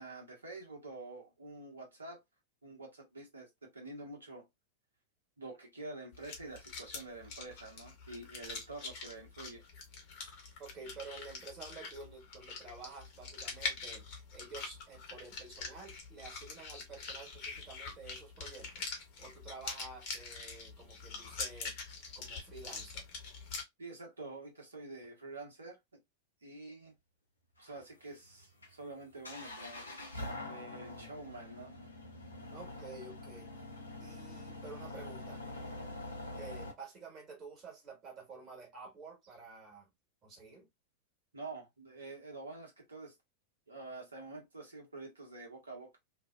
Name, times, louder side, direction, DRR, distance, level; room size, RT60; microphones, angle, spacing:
voice 1, 0.0-2.2 2.6-4.5 5.4-9.7 23.8-25.8 26.4-26.9 27.6-29.9 30.5-31.7 41.3-43.1 43.7-46.0, right 2 dB, 75° right, 1.0 m, -47 dB
sound 1, 6.1-23.6, left 4 dB, 45° left, 0.8 m, -44 dB
voice 2, 10.6-18.9 19.2-21.8 22.1-23.1 32.5-33.5 34.0-35.4 36.3-39.9 40.2-40.7, right 4 dB, 30° right, 1.3 m, -50 dB
sound 2, 27.6-36.7, left 2 dB, 80° left, 0.6 m, -45 dB
2.6 x 2.2 x 2.3 m
figure-of-eight pair, 90°, 0 cm